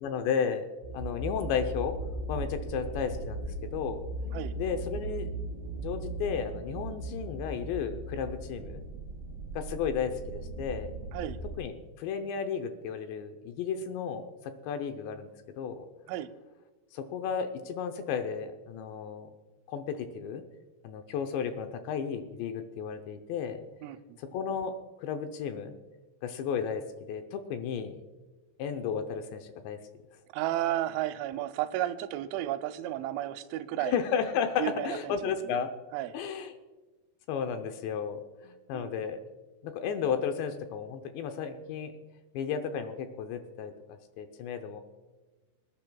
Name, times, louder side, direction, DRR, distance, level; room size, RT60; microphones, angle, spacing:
voice 1, 0.0-0.7 0.9-1.9 2.3-4.0 4.6-5.3 5.8-8.8 9.6-10.9 11.6-15.3 15.6-15.9 16.9-19.3 19.7-20.4 20.8-23.6 24.2-25.8 26.2-26.8 27.1-28.0 28.6-29.8 33.8-35.7 36.1-36.6 37.3-39.2 39.6-41.9 42.3-44.8, left 7 dB, 80° left, 7 dB, 2.9 m, -33 dB
sound 1, 0.8-11.6, right 2 dB, 40° right, 1.9 m, -38 dB
voice 2, 30.3-33.9 34.6-35.1 35.9-36.2 38.7-38.9, right 13 dB, 85° right, 10 dB, 3.1 m, -32 dB
26.0 x 10.5 x 2.3 m, 1.2 s
omnidirectional pair, 5.4 m